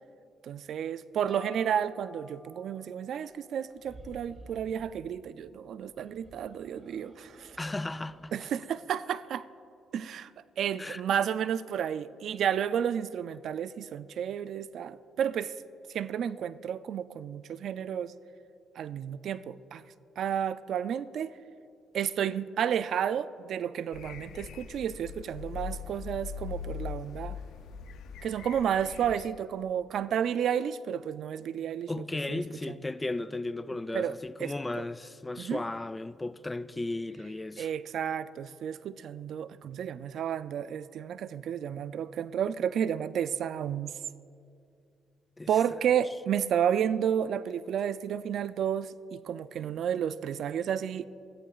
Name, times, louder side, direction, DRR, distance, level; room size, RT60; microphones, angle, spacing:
voice 1, 0.4-7.6 8.3-9.4 9.9-10.3 10.6-15.5 15.9-18.1 18.8-19.8 20.2-21.3 21.9-27.4 28.2-32.8 33.9-34.9 35.4-35.6 37.6-43.9 45.5-51.1, right 9 dB, 70° right, 0.3 m, -31 dB
sound 1, 1.3-4.8, right 1 dB, 25° right, 1.5 m, -52 dB
sound 2, 3.7-5.0 5.8-8.5, right 1 dB, 45° right, 2.4 m, -53 dB
voice 2, 7.6-8.3 10.8-11.0 31.9-37.7 45.4-45.5, left 2 dB, 15° left, 0.3 m, -35 dB
sound 3, 23.9-29.3, left 8 dB, 80° left, 0.5 m, -41 dB
17.5 x 14.0 x 2.4 m
cardioid pair, 90°, 0 cm